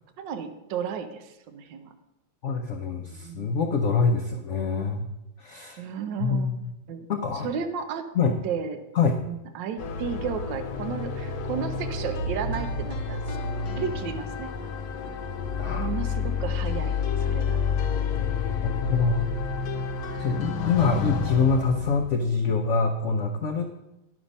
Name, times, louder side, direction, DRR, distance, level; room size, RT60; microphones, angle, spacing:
voice 1, 0.2-1.9 3.1-3.5 5.8-6.6 6.9-7.1 7.4-8.0 8.4-8.8 9.2-13.4 13.8-14.5 15.8-17.6 20.1-20.3, right 7 dB, 70° right, 7 dB, 1.4 m, -33 dB
voice 2, 2.4-5.1 5.4-5.8 6.2-6.7 7.1-7.5 8.1-8.3 8.9-9.2 15.6-15.9 18.6-19.3 20.2-23.7, left 4 dB, 85° left, 4 dB, 0.6 m, -25 dB
sound 1, 9.8-22.2, left 5 dB, 60° left, 1.2 m, -29 dB
9.7 x 6.1 x 5.3 m, 0.94 s
omnidirectional pair, 2.1 m